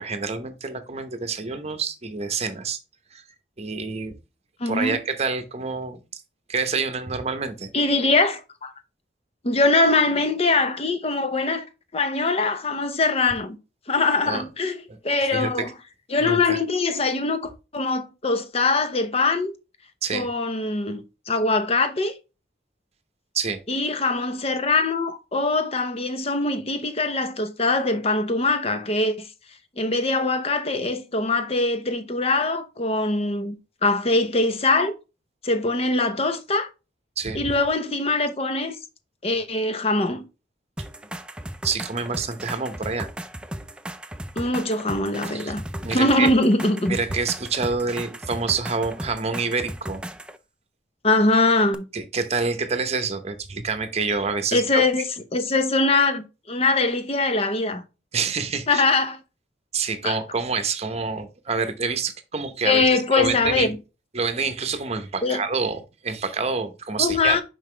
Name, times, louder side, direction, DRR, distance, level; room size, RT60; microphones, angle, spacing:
voice 1, 0.0-2.8 3.1-3.2 3.6-4.2 4.7-6.2 6.5-7.7 14.3-14.5 15.3-15.7 16.2-16.6 20.0-20.3 23.3-23.6 37.2-37.4 41.6-43.1 45.3-45.5 45.8-46.3 46.9-50.0 51.9-54.8 58.1-58.8 59.7-63.7 64.1-67.4, right 4 dB, 35° right, 0.9 m, -27 dB
voice 2, 4.6-5.0 7.7-8.7 9.4-11.7 11.9-13.6 13.9-15.7 16.1-19.5 20.1-22.1 23.7-29.3 29.8-33.6 33.8-34.9 35.4-36.7 37.3-38.8 39.2-40.2 44.4-45.6 45.9-47.0 51.0-51.8 54.5-57.8 58.7-59.2 60.0-60.2 62.6-63.8 65.2-65.4 67.0-67.4, left 3 dB, 35° left, 0.8 m, -22 dB
sound 1, 40.8-50.4 51.7-51.8, right 1 dB, 5° right, 0.4 m, -36 dB
5.7 x 5.4 x 3.3 m
head